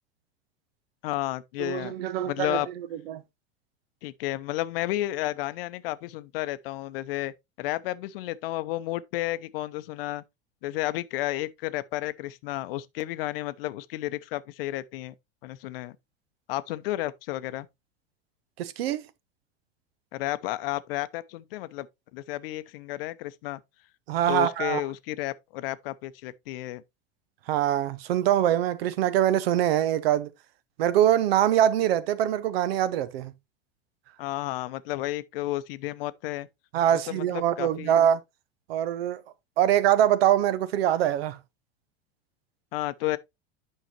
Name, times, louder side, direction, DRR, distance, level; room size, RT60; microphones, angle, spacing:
voice 1, 1.0-1.9 2.2-2.7 4.0-10.2 10.6-15.1 15.4-16.0 16.5-17.7 20.1-21.9 22.1-23.6 24.3-26.8 34.2-36.5 36.9-37.9 42.7-43.2, left 16 dB, 60° left, 0.7 m, -32 dB
voice 2, 1.6-2.6 3.1-3.2 18.6-19.0 24.1-24.8 27.5-30.3 30.8-33.3 36.7-38.2 38.7-39.2 39.6-41.4, right 11 dB, 65° right, 0.8 m, -23 dB
9.3 x 5.7 x 2.8 m
hypercardioid pair, 90°, 32 cm